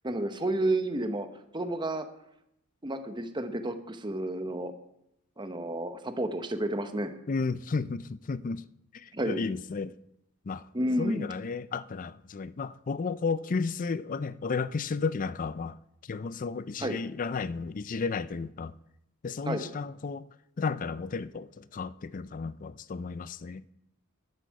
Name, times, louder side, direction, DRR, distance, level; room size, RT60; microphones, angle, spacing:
voice 1, 0.0-1.3 1.5-2.1 2.8-4.7 5.4-7.1 9.1-9.4 10.7-11.3 16.8-17.0 19.5-19.6, right 1 dB, 20° right, 1.0 m, -31 dB
voice 2, 7.3-8.6 8.9-9.9 10.5-10.7 11.0-15.8 16.1-18.8 19.2-20.3 20.6-23.7, left 4 dB, 35° left, 0.4 m, -33 dB
12.5 x 12.0 x 4.7 m
head